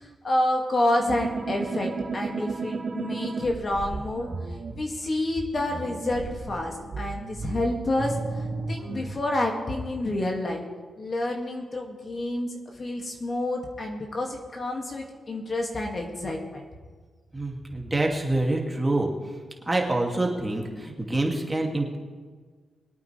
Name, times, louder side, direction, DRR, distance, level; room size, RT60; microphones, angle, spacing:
voice 1, 0.2-4.3 4.7-10.6 11.0-16.6, left 1 dB, 40° left, 1 dB, 2.2 m, -29 dB
sound 1, 1.0-4.7 5.6-9.1, right 3 dB, 65° right, 2.7 m, -33 dB
voice 2, 17.3-19.1 19.7-22.0, right 2 dB, 20° right, 0 dB, 2.5 m, -26 dB
22.5 x 8.9 x 3.4 m, 1.5 s
cardioid pair, 70°, 0 cm